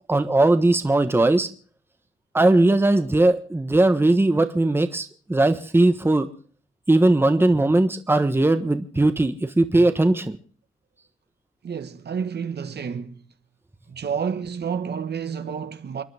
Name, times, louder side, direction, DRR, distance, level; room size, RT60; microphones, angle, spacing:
voice 1, 0.1-1.5 2.3-6.3 6.9-10.4, right 2 dB, 10° right, 1.2 m, -19 dB
voice 2, 11.6-13.2 13.9-16.0, right 6 dB, 50° right, 1.5 m, -30 dB
29.5 x 11.0 x 3.5 m
cardioid pair, 125°, 21 cm